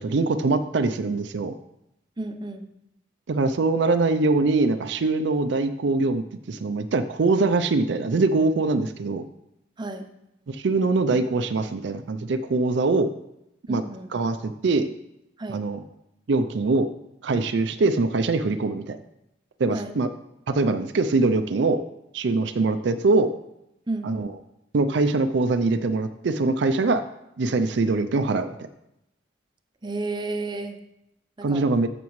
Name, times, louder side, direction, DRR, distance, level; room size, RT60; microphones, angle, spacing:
voice 1, 0.0-1.5 3.3-9.2 10.5-13.1 13.7-13.8 14.1-14.9 15.5-15.8 16.3-16.9 17.2-19.0 19.6-20.1 20.5-21.8 22.1-23.3 24.0-24.3 24.7-27.0 27.4-28.5 31.4-31.9, right 3 dB, 65° right, 9 dB, 0.4 m, -23 dB
voice 2, 2.2-2.7 9.8-10.1 13.7-14.1 15.4-15.6 19.7-20.0 23.9-24.1 29.8-30.8 31.4-31.7, right 2 dB, 25° right, 6 dB, 0.6 m, -32 dB
14.0 x 6.0 x 3.1 m, 0.85 s
head